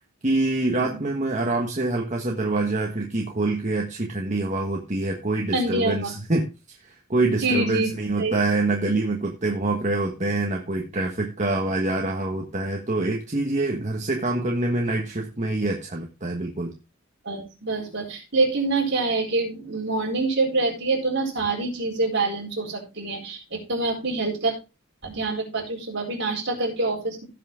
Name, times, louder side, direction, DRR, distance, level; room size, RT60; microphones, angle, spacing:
voice 1, 0.2-16.7, right 2 dB, 35° right, 1 dB, 1.4 m, -25 dB
voice 2, 5.5-6.1 7.4-8.3 17.2-24.5 25.0-27.2, right 3 dB, 55° right, 0 dB, 4.6 m, -26 dB
16.5 x 5.8 x 3.7 m, 0.29 s
head